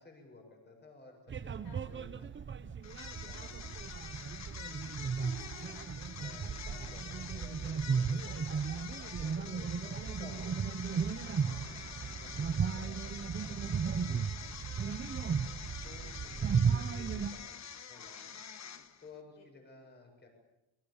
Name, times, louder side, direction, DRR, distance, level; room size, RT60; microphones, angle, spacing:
voice 1, 0.0-2.3 3.0-3.8 6.2-8.4 9.2-10.7 12.0-13.9 15.8-18.4 19.0-20.3, left 3 dB, 25° left, 2 dB, 7.4 m, -56 dB
sound 1, 1.3-17.3, right 6 dB, 25° right, 0.9 m, -35 dB
sound 2, 2.8-19.2, left 7 dB, 40° left, 1.5 m, -47 dB
voice 2, 3.2-3.6 4.8-6.0 7.2-7.3 7.9-8.0 8.3-8.4 9.0-9.1 11.4-11.8 15.3-15.7 17.9-18.2 19.4-19.5, left 4 dB, 60° left, 3 dB, 5.8 m, -57 dB
28.0 x 24.5 x 7.2 m, 0.96 s
cardioid pair, 175°, 43 cm